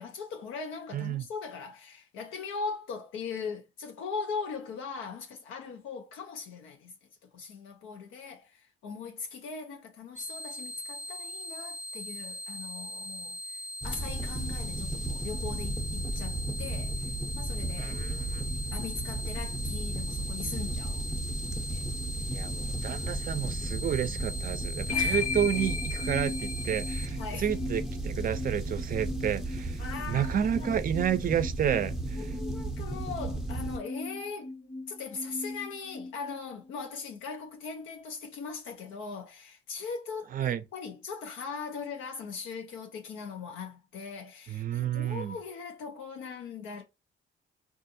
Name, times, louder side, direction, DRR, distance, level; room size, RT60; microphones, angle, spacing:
voice 1, 0.0-6.9 7.3-18.0 18.7-21.1 21.5-21.9 24.9-25.3 27.2-27.5 29.8-30.7 32.2-34.5 34.9-46.8, left 5 dB, 90° left, 0.5 m, -40 dB
voice 2, 0.9-1.2 17.8-18.4 22.3-32.3 40.3-40.6 44.5-45.4, right 9 dB, 45° right, 0.4 m, -31 dB
sound 1, 10.2-27.1, equal, 35° left, 0.7 m, -40 dB
sound 2, 13.8-33.8, right 2 dB, ahead, 0.6 m, -35 dB
sound 3, 24.9-37.0, left 4 dB, 65° left, 1.1 m, -38 dB
3.6 x 2.4 x 2.6 m
cardioid pair, 90°, 20 cm